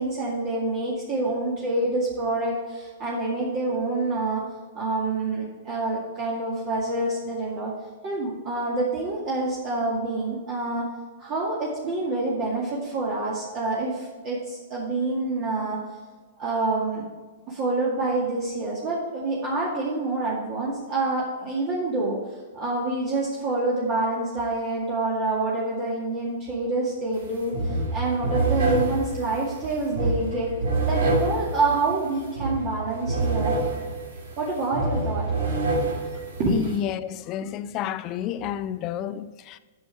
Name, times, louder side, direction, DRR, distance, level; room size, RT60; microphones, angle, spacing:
voice 1, 0.0-4.4 4.7-7.7 8.0-10.9 11.2-15.8 16.4-17.0 17.5-30.5 30.8-33.6 34.4-35.3 36.4-36.6 38.4-38.5, right 2 dB, 35° right, 2.1 m, -27 dB
sound 1, 27.1-27.3 27.5-36.8, right 2 dB, 80° right, 3.0 m, -27 dB
voice 2, 36.5-39.6, left 10 dB, 35° left, 0.4 m, -30 dB
8.6 x 7.1 x 4.5 m
hypercardioid pair, 140°, 0 cm